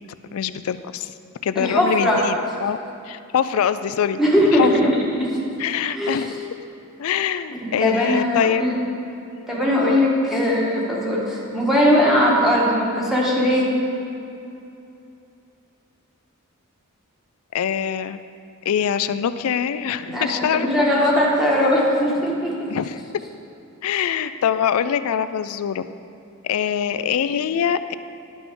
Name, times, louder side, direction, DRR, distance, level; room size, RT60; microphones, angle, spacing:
voice 1, 0.3-1.1 1.4-2.4 2.6-2.8 3.1-4.2 4.5-4.9 5.6-6.4 7.0-8.6 9.4-9.5 9.8-10.1 17.5-18.2 18.7-20.7 22.7-23.0 23.8-25.8 26.4-27.9, left 8 dB, 70° left, 12 dB, 0.3 m, -23 dB
voice 2, 1.5-2.2 4.2-5.3 5.9-6.2 7.6-8.8 9.5-13.7 20.1-22.7, equal, ahead, -6 dB, 1.5 m, -20 dB
11.0 x 6.0 x 3.7 m, 2.7 s
head